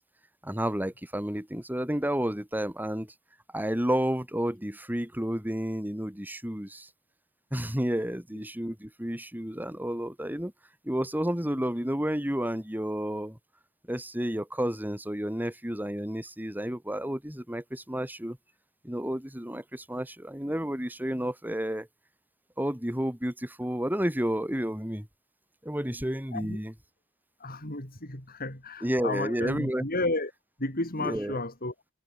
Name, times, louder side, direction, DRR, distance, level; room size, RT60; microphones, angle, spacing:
voice 1, 0.4-3.1 3.5-6.9 7.5-10.5 10.8-13.4 13.9-18.4 18.8-21.9 22.6-25.1 25.6-26.7 28.8-29.8 31.0-31.4, equal, 10° right, 3.6 m, -31 dB
voice 2, 27.4-30.3 30.6-31.7, left 2 dB, 45° left, 7.4 m, -32 dB
head